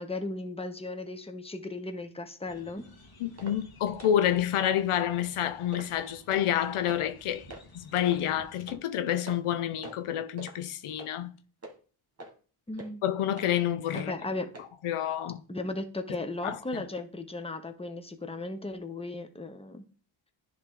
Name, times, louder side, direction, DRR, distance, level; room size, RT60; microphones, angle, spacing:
voice 1, 0.0-2.8 12.7-13.0 13.9-14.5 15.5-19.8, left 2 dB, 10° left, 1.0 m, -36 dB
sound 1, 2.5-8.8, left 2 dB, 45° left, 1.9 m, -54 dB
voice 2, 3.2-7.5 7.7-11.3 13.0-14.2 14.8-15.4 16.4-16.8, left 11 dB, 80° left, 0.7 m, -28 dB
sound 2, 3.4-3.6 4.0-4.2 4.6-4.7 5.2-5.3 5.7-6.0 6.3-6.5 6.9-7.0 7.5-7.7 8.1-8.2 8.7-8.8 9.3-9.5 9.8-10.1 10.4-10.6 11.0-11.1 11.6-11.8 12.2-12.3 12.8-12.9 13.4-13.5 14.0-14.1 14.5-14.7 15.1-15.2, right 2 dB, 30° right, 1.7 m, -44 dB
10.0 x 3.5 x 3.8 m
cardioid pair, 65°, 50 cm